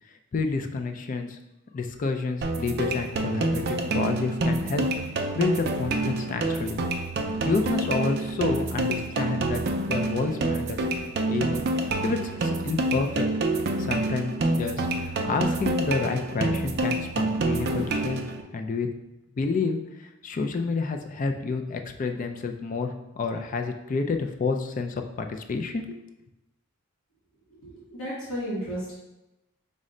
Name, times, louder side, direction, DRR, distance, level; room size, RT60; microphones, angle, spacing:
voice 1, 0.3-1.4 1.7-4.9 5.3-6.8 7.4-9.6 9.9-10.8 11.3-13.3 13.8-18.2 18.5-18.9 19.4-26.0, left 4 dB, 40° left, 6 dB, 0.3 m, -29 dB
sound 1, 2.4-18.4, right 2 dB, 50° right, 0.4 m, -27 dB
voice 2, 27.5-28.9, equal, 75° left, -7 dB, 1.1 m, -33 dB
5.1 x 2.1 x 3.7 m, 0.95 s
head